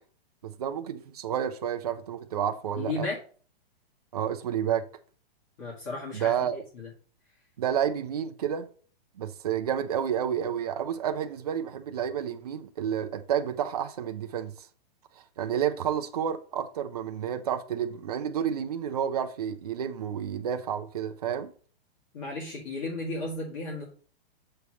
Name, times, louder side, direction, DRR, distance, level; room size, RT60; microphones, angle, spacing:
voice 1, 0.4-3.1 4.1-4.9 6.1-6.6 7.6-8.7 9.2-14.7 15.2-21.5, right 9 dB, 40° right, 0.5 m, -30 dB
voice 2, 2.7-3.2 5.6-6.4 6.7-6.9 22.1-23.8, left 2 dB, 35° left, 2.2 m, -34 dB
6.9 x 3.3 x 6.1 m
hypercardioid pair, 180°, 30 cm